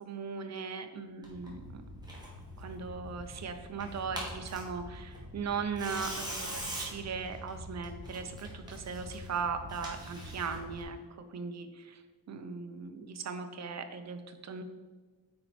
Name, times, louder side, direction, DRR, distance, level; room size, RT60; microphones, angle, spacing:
voice 1, 0.0-1.8 2.6-11.0 11.3-12.0 12.3-14.6, right 5 dB, 40° right, 7 dB, 0.7 m, -38 dB
Tearing, 1.2-10.8, equal, 10° right, 1.9 m, -43 dB
8.6 x 4.5 x 4.3 m, 1.4 s
wide cardioid pair, 130°, 39 cm